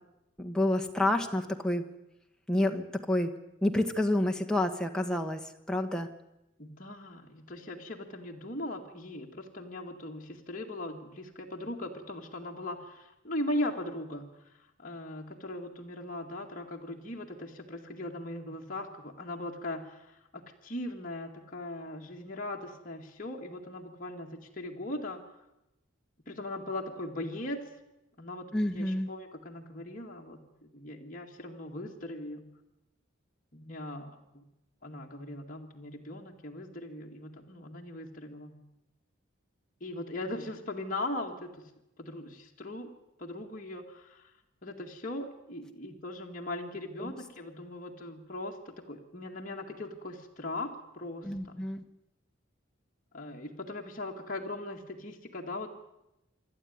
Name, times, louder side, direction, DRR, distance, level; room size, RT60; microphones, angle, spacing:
voice 1, 0.4-1.8 2.5-3.3 3.6-5.4 5.7-6.1 28.5-29.1 47.0-47.1 51.2-51.8, left 1 dB, 5° left, 3 dB, 1.3 m, -29 dB
voice 2, 6.6-14.5 14.8-25.2 26.3-27.6 28.2-32.4 33.5-34.4 34.8-38.5 39.8-41.7 42.0-42.9 43.2-44.3 44.6-51.6 53.1-55.7, left 1 dB, 40° left, 0 dB, 2.1 m, -39 dB
26.5 x 12.0 x 9.5 m, 0.91 s
head